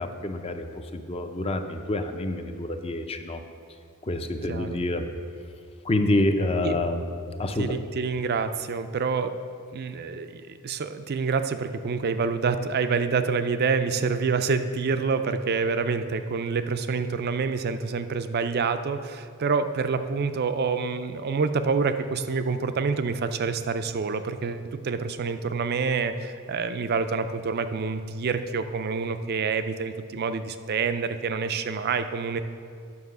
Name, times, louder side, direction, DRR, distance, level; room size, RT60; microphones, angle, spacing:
voice 1, 0.0-3.4 4.0-5.1 5.8-7.0 7.4-7.8, left 1 dB, 25° left, 6 dB, 0.6 m, -27 dB
voice 2, 7.6-9.4 9.7-32.4, right 5 dB, 45° right, 10 dB, 0.4 m, -27 dB
9.5 x 5.5 x 6.6 m, 2.3 s
head